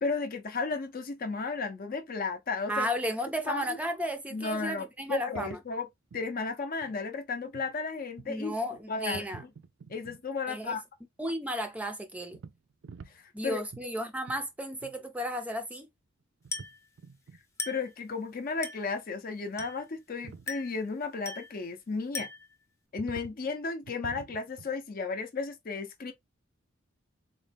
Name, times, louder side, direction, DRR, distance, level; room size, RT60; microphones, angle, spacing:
voice 1, 0.0-2.9 3.5-3.8 4.3-5.9 6.1-8.5 8.9-9.3 9.9-10.8 13.1-13.6 17.7-22.3 22.9-26.1, left 4 dB, 45° left, 0.6 m, -34 dB
voice 2, 2.7-5.6 8.3-9.4 10.5-10.8 11.2-12.4 13.3-15.9, equal, 5° right, 0.5 m, -34 dB
sound 1, 5.4-5.7 6.1-6.3 6.8-7.0 7.5-7.7 8.2-8.4 8.7-8.8 9.1-10.2 12.3-13.4 13.7-13.9 14.3-14.4 14.7-14.9 15.2-15.3 15.5-15.6 16.4-16.7 17.0-17.4 19.6-19.7 20.0-20.5 22.2-22.3 23.0-23.4 23.8-24.7, right 5 dB, 65° right, 0.4 m, -47 dB
Glass, 16.5-16.9 17.6-17.9 18.6-18.9 19.6-19.9 20.5-20.8 21.2-21.6 22.1-22.6, left 4 dB, 15° left, 0.8 m, -39 dB
4.0 x 2.1 x 3.3 m
head